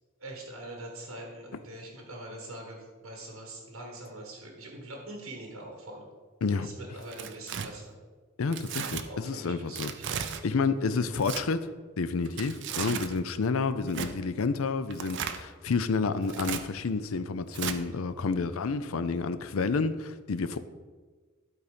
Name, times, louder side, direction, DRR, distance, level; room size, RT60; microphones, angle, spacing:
voice 1, 0.2-6.1 6.6-8.0 9.0-10.1, right 1 dB, 75° right, 0 dB, 1.6 m, -43 dB
Tearing, 7.0-7.7 8.5-9.0 9.8-10.4 11.1-11.4 12.3-13.1 13.9-14.1 14.9-15.4 16.2-16.6 17.5-17.8, right 7 dB, 60° right, 0.6 m, -35 dB
voice 2, 8.4-9.9 10.4-11.7 12.0-20.6, left 4 dB, 80° left, 12 dB, 0.5 m, -29 dB
12.0 x 4.1 x 5.1 m, 1.4 s
head